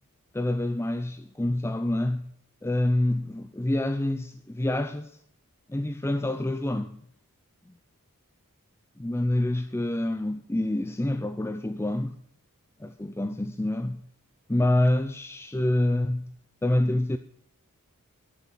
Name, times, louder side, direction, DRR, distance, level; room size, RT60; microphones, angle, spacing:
voice 1, 0.3-2.3 2.6-5.1 5.7-7.0 9.0-12.2 12.8-14.0 14.5-16.3 16.6-17.2, left 1 dB, 10° left, 0.5 m, -27 dB
12.0 x 8.3 x 8.3 m
head